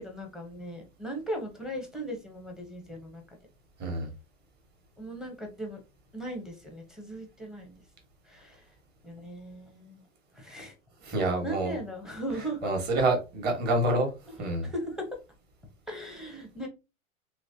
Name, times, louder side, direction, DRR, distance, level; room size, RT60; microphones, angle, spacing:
voice 1, 0.0-3.2 5.0-5.8 6.1-7.8 8.2-8.7 9.0-10.0 10.3-10.7 11.1-12.7 14.6-15.1 15.9-16.7, right 1 dB, ahead, 0.7 m, -38 dB
voice 2, 3.8-4.1 11.0-11.8 12.6-14.1 14.4-14.7, right 2 dB, 25° right, 1.3 m, -27 dB
3.1 x 3.1 x 2.6 m
hypercardioid pair, 115°, 42 cm